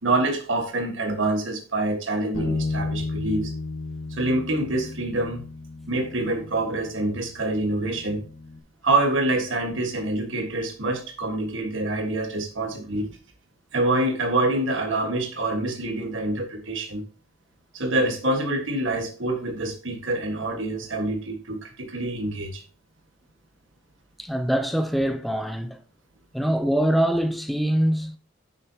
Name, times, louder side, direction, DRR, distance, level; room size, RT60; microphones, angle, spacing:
voice 1, 0.0-3.5 4.1-5.4 5.9-8.2 8.8-13.2 13.7-17.0 17.7-22.6, right 2 dB, 65° right, 1.6 m, -26 dB
Bass guitar, 2.3-8.6, left 3 dB, 70° left, 1.6 m, -33 dB
voice 2, 24.2-25.8 26.3-28.2, right 1 dB, ahead, 0.6 m, -23 dB
9.1 x 6.7 x 2.9 m
head